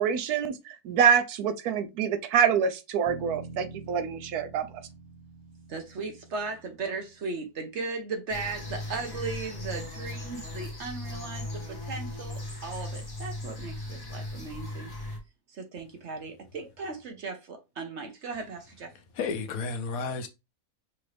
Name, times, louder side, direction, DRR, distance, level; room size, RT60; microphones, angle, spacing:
voice 1, 0.0-4.7, right 7 dB, 80° right, 1.1 m, -26 dB
Bass guitar, 3.1-7.5, right 4 dB, 25° right, 0.7 m, -46 dB
voice 2, 5.7-14.9 15.5-18.9, right 4 dB, 55° right, 1.1 m, -37 dB
sound 1, 8.3-15.2, left 1 dB, 20° left, 0.8 m, -37 dB
voice 3, 18.9-20.3, left 4 dB, 70° left, 1.1 m, -32 dB
5.8 x 2.6 x 3.2 m
omnidirectional pair, 1.6 m